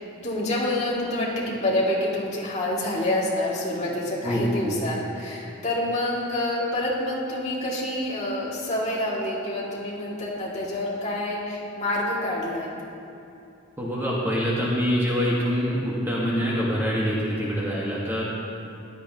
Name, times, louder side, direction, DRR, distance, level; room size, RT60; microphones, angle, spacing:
voice 1, 0.2-12.7, left 1 dB, 35° left, -6 dB, 2.5 m, -27 dB
voice 2, 4.2-4.8 13.8-18.2, equal, 10° right, -6 dB, 1.5 m, -25 dB
16.0 x 12.0 x 3.0 m, 2.7 s
head